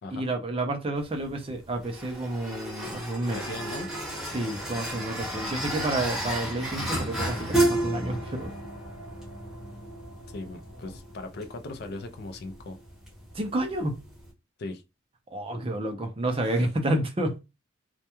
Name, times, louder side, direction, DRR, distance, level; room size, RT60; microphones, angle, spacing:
voice 1, 0.1-3.4 4.3-8.5 13.3-14.0 15.3-17.4, right 1 dB, 25° right, 0.4 m, -30 dB
sound 1, 1.0-14.3, right 1 dB, ahead, 0.8 m, -33 dB
voice 2, 3.2-3.9 10.3-12.8 14.6-14.8 16.4-16.7, left 2 dB, 50° left, 0.3 m, -38 dB
sound 2, 3.3-11.0, equal, 75° left, 0.7 m, -46 dB
2.2 x 2.1 x 2.9 m
head